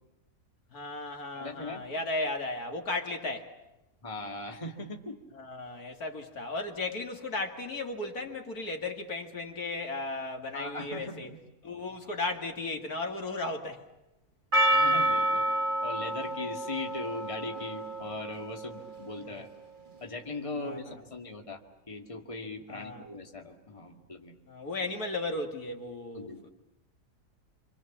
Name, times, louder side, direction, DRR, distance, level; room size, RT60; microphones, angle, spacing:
voice 1, 0.7-3.5 5.3-11.3 11.6-13.8 19.2-19.4 20.6-20.9 22.7-23.1 24.5-26.5, left 2 dB, 65° left, 2.7 m, -35 dB
voice 2, 1.3-1.9 4.0-5.2 10.5-11.2 14.7-15.5 15.8-19.5 20.0-21.6 21.9-24.4 26.1-26.5, left 2 dB, 20° left, 2.0 m, -39 dB
Percussion, 14.5-19.1, right 1 dB, 30° right, 1.5 m, -29 dB
27.0 x 26.0 x 7.3 m
omnidirectional pair, 1.7 m